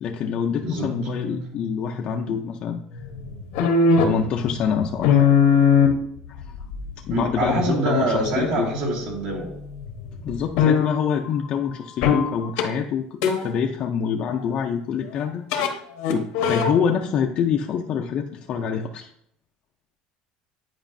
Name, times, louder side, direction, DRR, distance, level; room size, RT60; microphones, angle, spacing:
voice 1, 0.0-2.8 4.0-5.3 6.3-6.4 7.0-8.7 10.2-13.1 13.4-15.7 16.1-19.1, left 7 dB, 40° left, 2 dB, 0.4 m, -26 dB
voice 2, 0.6-0.9 7.1-9.5, right 2 dB, 65° right, -2 dB, 2.0 m, -25 dB
sound 1, 0.8-2.1 2.9-9.5 9.8-11.0 12.0-12.3 12.6-12.7 13.2-13.5 15.5-15.7 16.0-16.7, left 6 dB, 80° left, 1.0 m, -21 dB
9.0 x 4.8 x 2.6 m, 0.69 s
cardioid pair, 150°, 3 cm